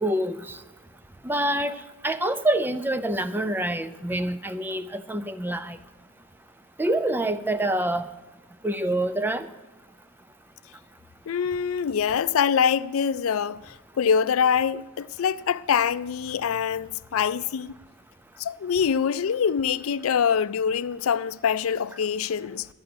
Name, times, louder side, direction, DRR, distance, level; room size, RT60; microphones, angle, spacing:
voice 1, 0.0-0.6 1.2-5.8 6.8-8.1 8.6-9.5, right 1 dB, 10° right, 0.5 m, -26 dB
voice 2, 11.3-17.8 18.4-22.7, left 7 dB, 85° left, 0.4 m, -24 dB
13.5 x 5.6 x 9.3 m
head